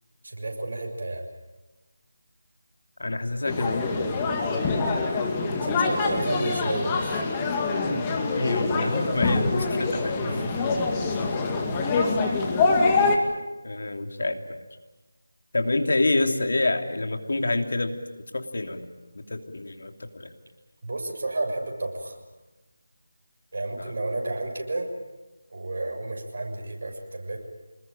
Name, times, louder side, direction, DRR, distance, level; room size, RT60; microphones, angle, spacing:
voice 1, 0.2-1.2 4.4-4.7 5.6-7.2 10.2-10.7 11.1-11.4 20.8-22.2 23.5-24.9 25.5-27.4, right 2 dB, 55° right, 1 dB, 6.8 m, -32 dB
voice 2, 3.0-4.1 8.3-10.2 13.6-14.6 15.5-17.9 18.3-18.9 19.1-20.3 23.8-23.9, left 2 dB, 65° left, 6 dB, 3.1 m, -27 dB
sound 1, 3.5-13.2, left 3 dB, 15° left, 2.3 m, -25 dB
27.0 x 21.0 x 9.0 m, 1.1 s
figure-of-eight pair, 165°, 0 cm